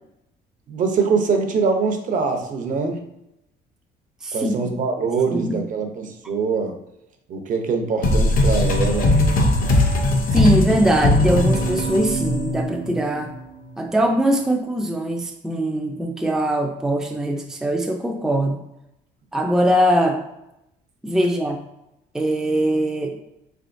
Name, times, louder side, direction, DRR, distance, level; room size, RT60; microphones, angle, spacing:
voice 1, 0.7-3.0 4.3-6.8 7.3-9.1, right 5 dB, 50° right, 5 dB, 0.7 m, -23 dB
voice 2, 4.2-4.7 5.3-5.6 10.3-13.3 13.8-18.6 19.3-20.2 21.0-21.6 22.1-23.2, right 1 dB, 5° right, 2 dB, 0.4 m, -21 dB
sound 1, 8.0-13.3, left 1 dB, 55° left, 0.8 m, -19 dB
3.7 x 3.5 x 2.5 m, 0.85 s
cardioid pair, 110°, 17 cm